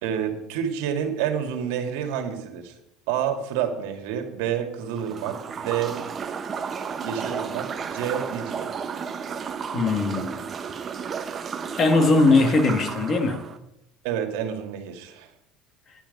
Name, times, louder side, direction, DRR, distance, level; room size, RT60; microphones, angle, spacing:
voice 1, 0.0-2.7 3.1-6.0 7.0-8.7 14.0-15.3, right 9 dB, 85° right, 5 dB, 2.1 m, -29 dB
sound 1, 4.9-13.6, right 6 dB, 30° right, 1.0 m, -33 dB
voice 2, 9.7-10.4 11.8-13.4, left 3 dB, 35° left, 6 dB, 1.9 m, -20 dB
11.0 x 10.5 x 5.4 m, 0.84 s
cardioid pair, 130°, 0 cm